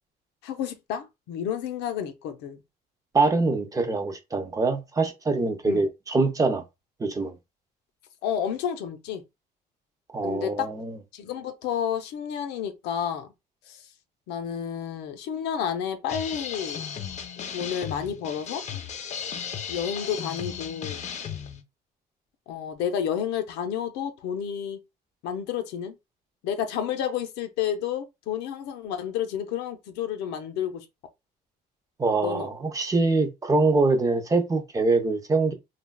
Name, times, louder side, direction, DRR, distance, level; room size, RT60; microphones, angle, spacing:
voice 1, 0.4-2.6 5.7-5.9 8.2-9.2 10.2-10.7 11.1-13.3 13.7-13.9 14.3-16.8 17.5-18.6 19.7-21.0 22.5-24.8 25.2-26.0 26.4-30.9 32.2-32.5, left 8 dB, 90° left, 0.6 m, -30 dB
voice 2, 3.1-6.6 7.0-7.3 10.1-10.9 32.0-35.5, right 3 dB, 20° right, 0.6 m, -24 dB
sound 1, 16.1-21.6, left 7 dB, 45° left, 0.5 m, -35 dB
3.2 x 2.3 x 2.2 m
cardioid pair, 110°, 17 cm